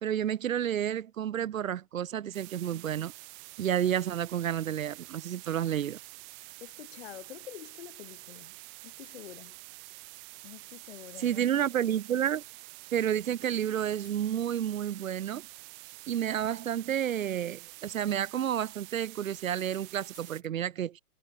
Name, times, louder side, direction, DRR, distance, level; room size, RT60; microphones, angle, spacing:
voice 1, 0.0-3.1 3.6-6.0 11.2-12.4 12.9-15.4 16.1-21.0, right 10 dB, 60° right, 0.7 m, -30 dB
sound 1, 2.3-20.4, right 36 dB, 25° right, 1.2 m, -48 dB
voice 2, 6.4-8.6 8.8-9.6 10.4-11.5, left 13 dB, 40° left, 1.0 m, -47 dB
sound 2, 12.3-12.6 13.9-14.2 14.9-15.4 15.8-16.2 16.5-16.7 17.5-17.7 19.3-19.8 20.1-20.5, left 4 dB, 80° left, 3.1 m, -59 dB
figure-of-eight pair, 120°, 47 cm